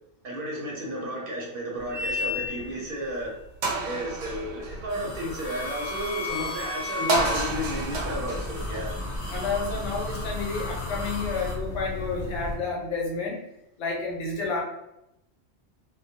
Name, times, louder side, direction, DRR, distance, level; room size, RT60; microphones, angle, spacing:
voice 1, 0.2-3.3 3.8-8.9, equal, 60° right, -2 dB, 0.7 m, -33 dB
sound 1, 1.9-2.8 3.2-3.3 3.6-9.7, equal, 90° right, 0.9 m, -31 dB
sound 2, 4.9-11.5, left 1 dB, 45° left, 0.7 m, -41 dB
sound 3, 7.1-12.6, left 2 dB, 5° left, 0.4 m, -34 dB
voice 2, 9.3-13.4 13.8-14.6, left 4 dB, 80° left, -2 dB, 1.0 m, -30 dB
2.2 x 2.1 x 2.7 m, 0.84 s
omnidirectional pair, 1.2 m